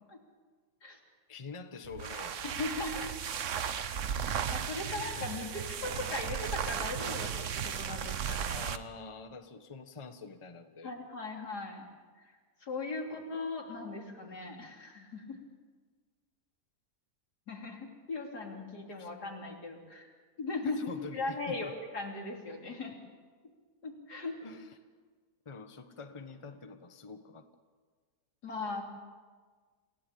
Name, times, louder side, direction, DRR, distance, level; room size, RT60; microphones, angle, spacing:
voice 1, 1.3-2.4 5.0-5.5 8.5-10.9 13.1-13.2 19.0-19.1 20.8-21.7 24.4-24.7 25.4-27.4, left 4 dB, 20° left, 7 dB, 1.1 m, -46 dB
sound 1, 1.8-8.9, right 8 dB, 55° right, 1.1 m, -35 dB
voice 2, 2.4-3.1 4.5-8.7 10.8-11.8 12.2-12.3 12.6-15.4 17.5-20.1 20.4-22.9 23.8-24.3 28.4-28.8, left 3 dB, 75° left, 1 dB, 3.8 m, -38 dB
28.0 x 16.5 x 8.6 m, 1.5 s
omnidirectional pair, 1.7 m